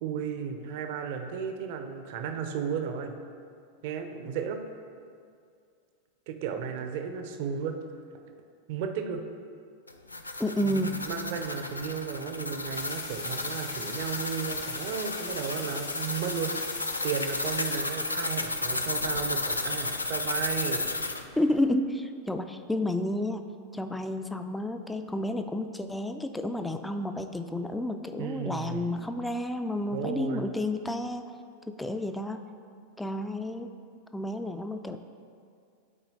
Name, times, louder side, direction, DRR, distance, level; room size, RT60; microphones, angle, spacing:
voice 1, 0.0-3.1 3.8-4.6 6.3-7.8 8.7-9.2 10.6-16.6 17.0-20.9 28.2-29.0 29.9-30.5, right 7 dB, 50° right, 6 dB, 0.6 m, -34 dB
sound 1, 9.9-21.2, left 2 dB, 80° left, 0.4 m, -33 dB
voice 2, 10.4-11.0 21.4-23.4 23.7-31.2 31.7-32.4 33.0-33.7 34.1-35.0, left 1 dB, 5° left, 7 dB, 0.3 m, -30 dB
sound 2, 12.7-17.8, left 4 dB, 65° left, 0.8 m, -42 dB
10.5 x 4.3 x 2.7 m, 2.3 s
figure-of-eight pair, 90°, 0 cm